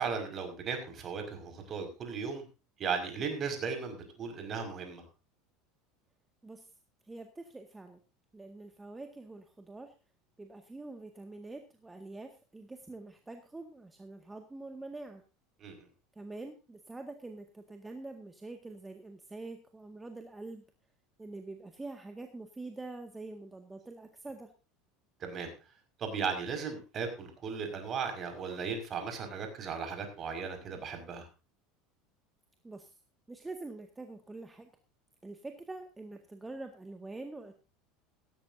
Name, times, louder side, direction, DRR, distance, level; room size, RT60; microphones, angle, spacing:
voice 1, 0.0-2.4 2.8-5.0 15.6-15.8 25.2-25.5 26.0-31.3, right 5 dB, 40° right, 6 dB, 5.5 m, -36 dB
voice 2, 7.1-8.0 8.3-9.9 10.4-15.2 16.2-20.6 21.2-24.5 32.6-32.9 33.3-34.7 35.2-37.5, right 2 dB, 15° right, 5 dB, 1.9 m, -45 dB
17.0 x 14.5 x 2.7 m, 0.30 s
hypercardioid pair, 75°, 0 cm